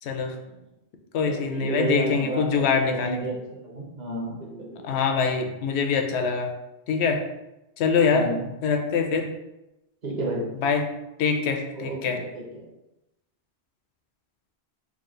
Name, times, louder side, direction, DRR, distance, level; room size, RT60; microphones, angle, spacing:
voice 1, 0.0-0.4 1.1-3.2 4.8-6.5 6.9-7.2 7.8-8.3 8.6-9.3 10.6-10.9 11.2-12.2, left 5 dB, 85° left, 4 dB, 0.8 m, -24 dB
voice 2, 1.2-5.0 8.0-8.5 10.0-10.4 11.8-12.6, right 2 dB, 45° right, -3 dB, 1.0 m, -32 dB
3.7 x 2.4 x 3.8 m, 0.93 s
omnidirectional pair, 1.1 m